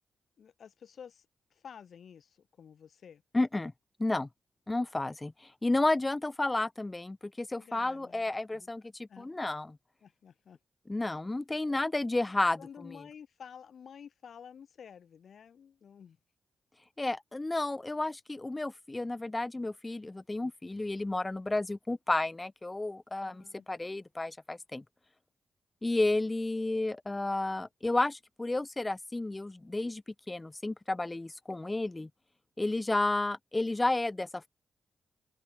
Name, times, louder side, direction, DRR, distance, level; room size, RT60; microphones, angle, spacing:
voice 1, 0.4-3.2 7.5-8.7 9.1-9.6 10.0-10.6 11.7-11.8 12.6-16.2 23.2-23.7, left 7 dB, 70° left, 6.7 m, -51 dB
voice 2, 3.3-3.7 4.0-4.3 4.7-9.8 10.9-13.0 17.0-24.8 25.8-32.1 32.6-34.5, left 2 dB, 25° left, 0.3 m, -32 dB
open air
supercardioid pair, 50°, 0 cm